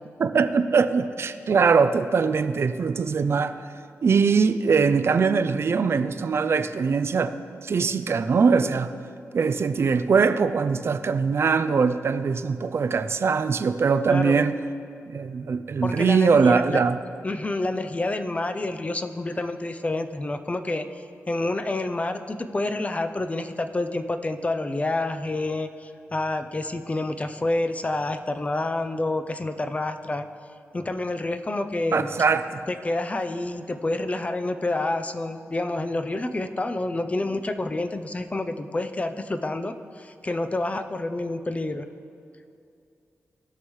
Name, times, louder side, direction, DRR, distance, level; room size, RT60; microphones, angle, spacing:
voice 1, 0.2-3.5 4.0-7.3 7.6-8.9 9.3-14.5 15.1-17.0 31.9-32.6, right 5 dB, 55° right, 10 dB, 0.4 m, -22 dB
voice 2, 14.1-14.5 15.8-16.8 17.2-20.9 21.3-30.2 30.7-32.1 32.7-41.9, left 2 dB, 25° left, 9 dB, 0.6 m, -28 dB
17.0 x 6.2 x 3.2 m, 2.5 s
cardioid pair, 75°, 5 cm